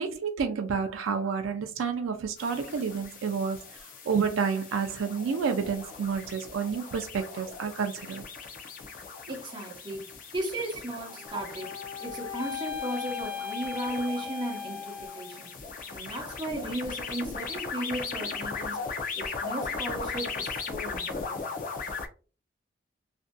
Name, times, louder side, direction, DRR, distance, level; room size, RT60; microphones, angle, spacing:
voice 1, 0.0-3.6 4.1-8.2, right 6 dB, 85° right, 0.4 m, -29 dB
sound 1, 2.4-22.1, left 4 dB, 45° left, 0.4 m, -38 dB
voice 2, 9.3-11.7 12.0-15.6 15.9-21.4, right 1 dB, 25° right, 0.7 m, -36 dB
sound 2, 11.2-15.5, left 7 dB, 85° left, 0.9 m, -38 dB
2.6 x 2.4 x 2.2 m
head